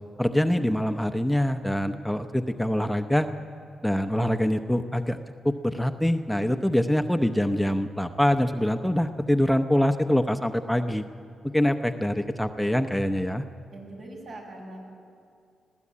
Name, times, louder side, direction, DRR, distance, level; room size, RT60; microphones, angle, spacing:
voice 1, 0.2-3.3 3.8-11.1 11.5-13.4, equal, ahead, 7 dB, 0.8 m, -24 dB
voice 2, 13.7-14.9, right 2 dB, 70° right, -1 dB, 6.6 m, -42 dB
21.0 x 15.5 x 8.5 m, 2.3 s
cardioid pair, 80°, 0 cm